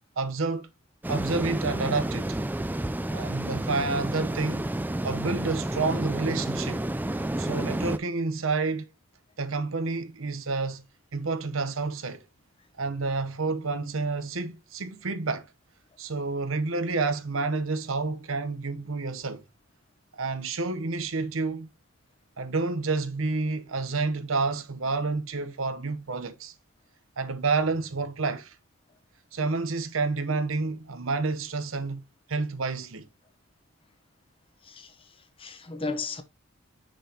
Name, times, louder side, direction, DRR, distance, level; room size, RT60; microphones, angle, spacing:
voice 1, 0.2-0.7 1.1-2.3 3.1-4.7 5.0-6.8 7.4-8.9 9.4-10.8 11.1-12.2 12.8-15.4 16.0-19.4 20.1-21.7 22.4-26.5 27.2-28.6 29.3-32.0 32.3-33.0, right 3 dB, 75° right, 0.9 m, -29 dB
sound 1, 1.0-8.0, right 1 dB, 10° right, 0.3 m, -30 dB
voice 2, 34.6-36.2, left 3 dB, 25° left, 0.9 m, -35 dB
6.5 x 5.9 x 2.9 m
head